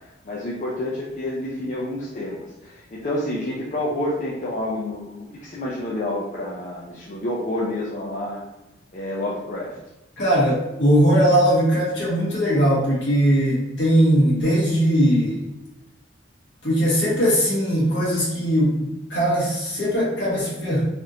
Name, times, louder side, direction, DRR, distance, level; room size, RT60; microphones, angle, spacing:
voice 1, 0.2-8.4 8.9-9.8, left 1 dB, 40° left, -5 dB, 0.4 m, -29 dB
voice 2, 10.2-15.4 16.6-20.8, equal, 65° left, -6 dB, 1.4 m, -20 dB
3.4 x 2.5 x 2.7 m, 0.97 s
head